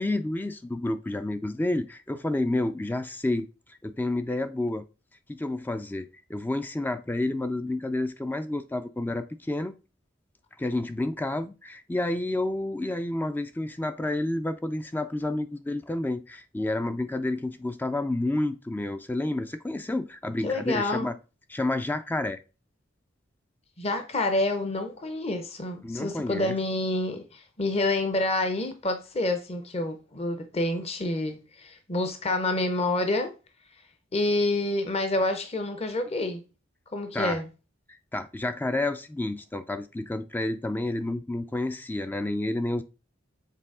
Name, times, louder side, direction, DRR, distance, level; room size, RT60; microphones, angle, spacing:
voice 1, 0.0-3.5 3.8-4.9 5.3-9.7 10.6-21.2 21.5-22.4 25.8-26.5 37.1-37.4 38.1-42.8, left 2 dB, 10° left, 0.3 m, -30 dB
voice 2, 20.4-21.1 23.8-33.3 34.1-36.4 36.9-37.5, left 2 dB, 35° left, 0.7 m, -28 dB
6.6 x 4.0 x 3.6 m
head